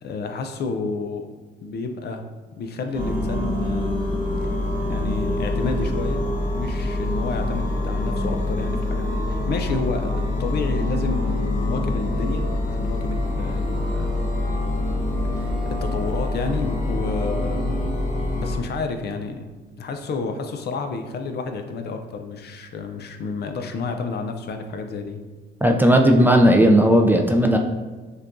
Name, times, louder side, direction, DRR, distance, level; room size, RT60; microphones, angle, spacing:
voice 1, 0.0-1.3 1.6-2.2 2.6-4.0 4.9-6.3 6.5-14.2 15.3-17.8 18.3-19.5 19.8-25.2, left 4 dB, 55° left, 6 dB, 0.5 m, -30 dB
sound 1, 2.9-18.6, left 1 dB, 40° left, 0.9 m, -25 dB
voice 2, 25.6-27.6, equal, 10° right, 2 dB, 0.3 m, -15 dB
6.3 x 2.3 x 2.5 m, 1.3 s
cardioid pair, 90°, 20 cm